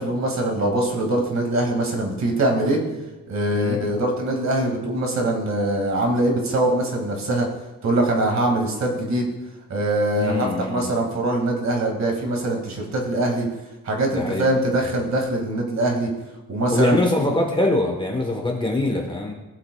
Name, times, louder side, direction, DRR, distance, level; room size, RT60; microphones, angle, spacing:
voice 1, 0.0-2.8 3.3-7.5 7.8-9.3 9.7-13.5 13.8-16.1 16.5-17.0, right 1 dB, 45° right, 0 dB, 2.1 m, -23 dB
voice 2, 10.2-10.9 14.1-14.5 16.7-19.3, left 1 dB, 15° left, 1 dB, 1.1 m, -23 dB
17.5 x 7.6 x 2.3 m, 1.1 s
cardioid pair, 150°, 37 cm